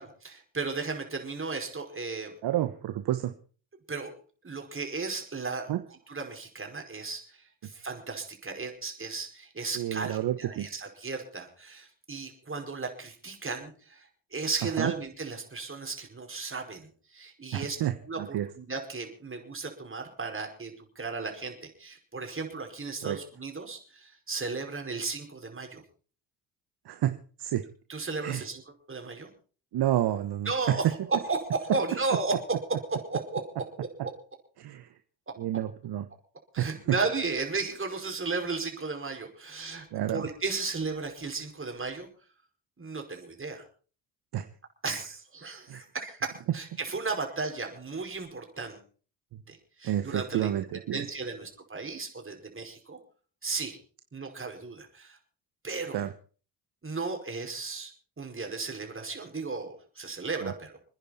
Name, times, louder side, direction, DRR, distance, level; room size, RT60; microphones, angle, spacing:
voice 1, 0.0-2.4 3.9-4.1 4.4-17.8 18.0-25.8 27.9-29.3 30.5-32.3 32.9-34.1 36.5-42.1 42.8-43.6 44.8-48.8 49.5-50.5 50.9-53.0 53.4-53.8 54.1-55.2 55.6-56.0 56.8-57.9 58.2-60.8, right 4 dB, 25° right, 3 dB, 5.3 m, -35 dB
voice 2, 2.4-3.3 5.7-5.8 9.7-10.7 14.8-14.9 17.5-17.9 18.2-18.5 23.0-23.2 26.9-27.6 28.2-28.4 29.7-30.8 34.6-34.9 35.4-36.0 36.6-36.7 39.9-40.2 44.3-44.4 45.7-45.8 49.3-49.4 49.8-51.0 55.9-56.1 60.4-60.5, right 12 dB, 55° right, 10 dB, 1.2 m, -30 dB
27.5 x 10.0 x 4.3 m, 0.40 s
hypercardioid pair, 55°, 46 cm